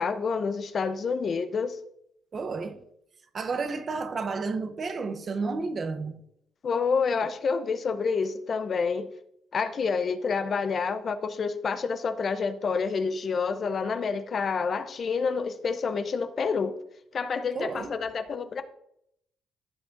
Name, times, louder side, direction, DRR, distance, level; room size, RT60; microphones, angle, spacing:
voice 1, 0.0-1.8 6.6-9.1 9.5-16.8 17.1-18.6, left 5 dB, 50° left, 0.6 m, -28 dB
voice 2, 2.3-2.8 3.3-6.2 17.6-18.0, right 4 dB, 45° right, 0.8 m, -31 dB
14.5 x 6.0 x 2.6 m
cardioid pair, 90°, 0 cm